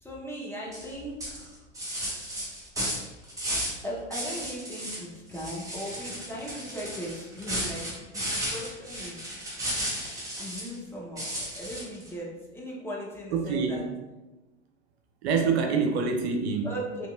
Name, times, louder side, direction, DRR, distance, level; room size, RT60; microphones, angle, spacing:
voice 1, 0.0-1.5 3.8-9.3 10.4-13.9 16.6-17.1, equal, 5° left, -5 dB, 0.6 m, -38 dB
sound 1, 0.7-0.9 1.2-3.8 4.1-5.0 5.3-10.8 11.2-12.1, equal, 10° right, 0.9 m, -34 dB
voice 2, 13.3-13.9 15.2-16.7, right 5 dB, 65° right, 4 dB, 0.5 m, -26 dB
2.9 x 2.8 x 2.3 m, 1.1 s
hypercardioid pair, 95°, 35 cm